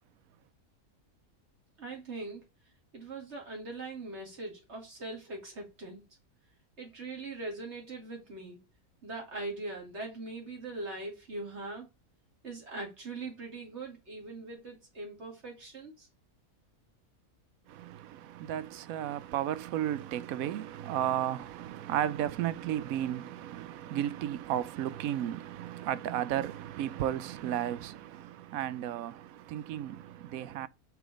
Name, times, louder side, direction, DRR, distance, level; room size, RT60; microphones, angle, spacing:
voice 1, 1.8-2.4 2.9-6.0 6.8-8.6 9.0-11.9 12.4-16.1, right 2 dB, 45° right, 2.9 m, -41 dB
voice 2, 17.7-30.7, right 11 dB, 75° right, 1.0 m, -34 dB
6.1 x 3.8 x 6.2 m
omnidirectional pair, 1.6 m